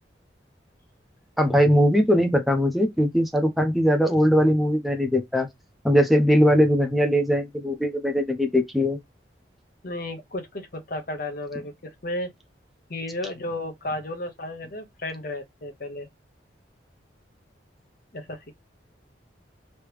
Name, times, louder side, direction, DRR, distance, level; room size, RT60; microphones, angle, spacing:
voice 1, 1.4-5.5 5.8-9.0, equal, ahead, 0.7 m, -20 dB
voice 2, 9.8-12.3 12.9-16.1 18.1-18.5, left 1 dB, 50° left, 1.0 m, -33 dB
3.2 x 3.0 x 3.3 m
head